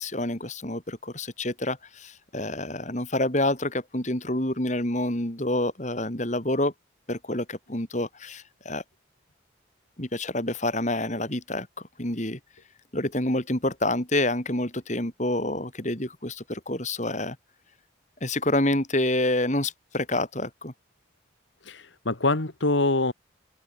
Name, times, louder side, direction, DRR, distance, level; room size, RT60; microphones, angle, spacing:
voice 1, 0.0-6.7 7.1-8.8 10.0-11.7 12.0-12.4 12.9-17.4 18.2-20.7, left 1 dB, 35° left, 3.8 m, -28 dB
voice 2, 21.6-23.1, left 2 dB, 70° left, 2.0 m, -24 dB
head